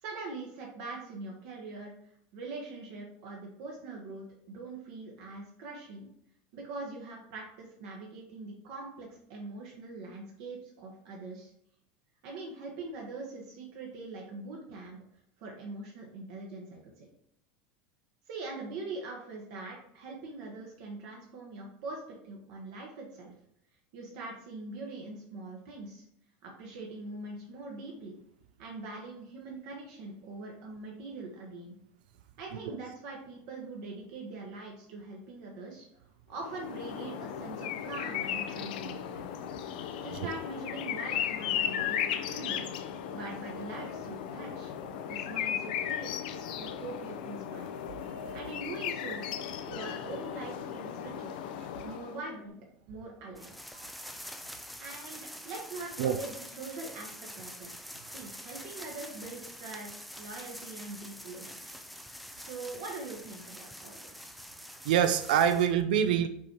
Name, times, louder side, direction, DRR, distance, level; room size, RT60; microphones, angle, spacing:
voice 1, 0.0-1.9 2.3-6.1 6.5-11.5 12.2-15.0 15.4-17.1 18.3-23.3 23.9-26.0 26.4-28.2 28.6-31.8 32.4-35.9 36.3-39.3 40.0-42.7 43.1-44.7 45.1-46.1 46.6-47.7 48.3-49.3 49.7-51.3 51.8-52.6 52.9-53.5 54.8-57.7 58.1-61.8 62.4-64.4, right 3 dB, 50° right, -1 dB, 1.3 m, -43 dB
sound 1, 36.4-52.3, left 9 dB, 70° left, 0.7 m, -36 dB
sound 2, 53.4-65.7, equal, ahead, 0.3 m, -46 dB
voice 2, 53.7-54.1 56.0-56.2 64.8-66.3, right 9 dB, 75° right, 9 dB, 0.6 m, -26 dB
6.1 x 4.3 x 4.6 m, 0.72 s
supercardioid pair, 180°, 5 cm